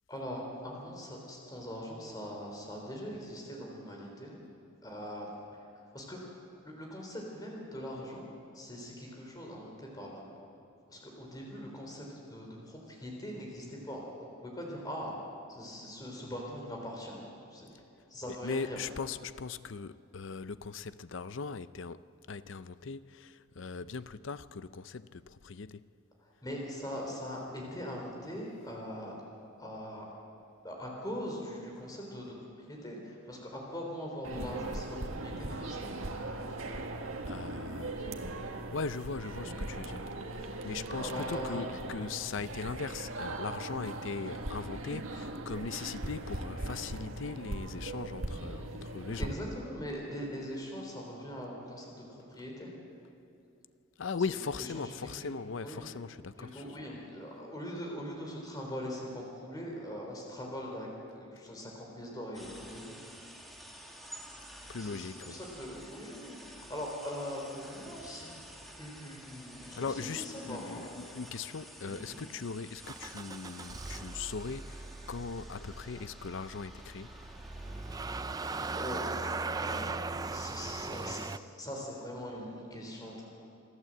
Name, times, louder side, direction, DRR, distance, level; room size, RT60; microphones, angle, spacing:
voice 1, 0.1-4.4 4.8-5.3 5.5-5.6 5.9-6.2 6.6-10.3 10.9-15.1 15.5-17.2 17.5-17.7 18.1-18.8 26.4-29.1 29.6-30.1 30.6-36.1 38.1-38.2 39.4-39.5 40.9-41.6 49.2-52.7 54.3-54.4 54.7-55.2 55.6-55.9 56.4-60.9 61.2-63.0 64.8-68.3 68.8-70.8 71.8-72.2 78.8-79.9 80.3-81.2 81.6-83.3, equal, 20° left, 4.0 m, -41 dB
voice 2, 18.3-25.9 37.3-37.9 38.7-49.3 54.0-56.6 64.7-65.4 69.7-77.1, left 5 dB, 60° left, 0.5 m, -39 dB
sound 1, 34.2-49.3, right 2 dB, 80° right, 1.6 m, -39 dB
sound 2, 62.3-78.2, equal, ahead, 1.8 m, -51 dB
Motor vehicle (road) / Engine starting, 72.8-81.4, right 3 dB, 15° right, 0.4 m, -39 dB
27.5 x 12.0 x 7.8 m
head